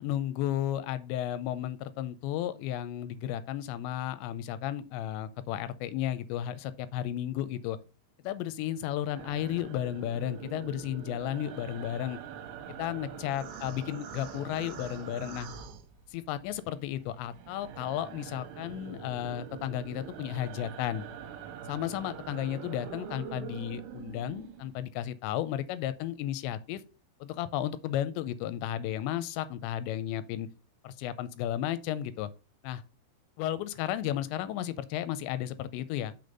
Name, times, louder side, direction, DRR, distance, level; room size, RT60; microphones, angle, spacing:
voice 1, 0.0-7.8 8.2-12.2 12.8-15.5 16.1-21.1 21.7-26.8 27.2-30.5 30.8-32.3 32.6-32.8 33.4-36.1, left 11 dB, 85° left, 2.8 m, -33 dB
sound 1, 9.1-16.5 16.8-24.8, right 8 dB, 80° right, 3.1 m, -44 dB
6.2 x 5.1 x 5.3 m
omnidirectional pair, 5.2 m